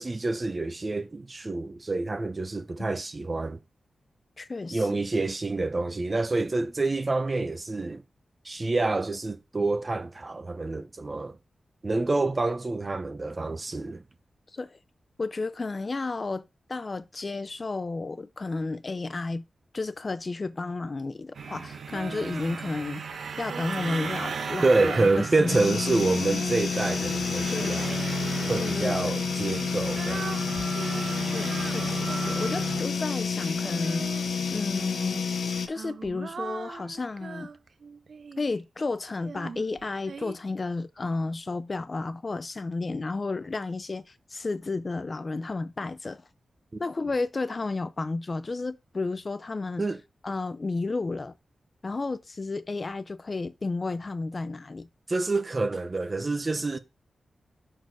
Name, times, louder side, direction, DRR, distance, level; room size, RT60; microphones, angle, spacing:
voice 1, 0.0-3.6 4.7-8.0 8.4-11.3 11.8-14.0 24.6-28.0 28.5-30.3 46.7-46.8 49.8-50.0 55.1-56.8, right 3 dB, 30° right, 0.7 m, -27 dB
voice 2, 4.4-5.0 14.5-14.8 15.2-19.4 19.7-23.0 23.4-25.5 27.5-27.8 28.6-29.2 31.3-34.1 34.5-35.3 35.7-37.5 38.4-46.2 46.8-49.8 50.2-51.3 51.8-54.9, left 3 dB, 35° left, 0.4 m, -32 dB
sound 1, 21.3-32.8, right 5 dB, 80° right, 1.0 m, -35 dB
Female singing, 21.9-23.0 23.5-28.3 29.1-34.6 35.4-38.6 39.2-40.4, right 5 dB, 55° right, 0.3 m, -42 dB
sound 2, 25.5-35.7, left 5 dB, 85° left, 0.7 m, -29 dB
6.2 x 4.5 x 4.7 m
wide cardioid pair, 135°, 0 cm